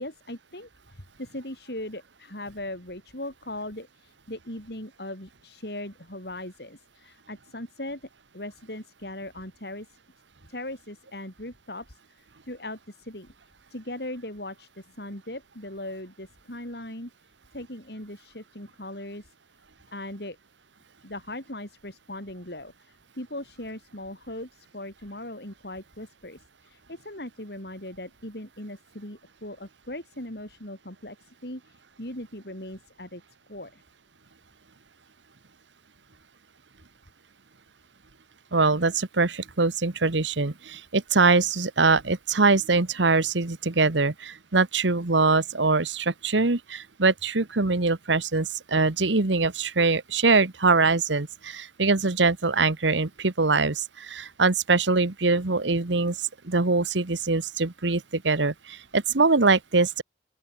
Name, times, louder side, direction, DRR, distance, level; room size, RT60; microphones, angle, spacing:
voice 1, 0.0-8.1 8.3-10.0 10.5-13.3 13.7-17.1 17.5-19.3 19.9-20.4 21.0-33.2 33.5-33.8, left 1 dB, 60° left, 7.5 m, -39 dB
voice 2, 38.5-56.2 56.4-60.0, right 3 dB, 85° right, 1.4 m, -23 dB
open air
head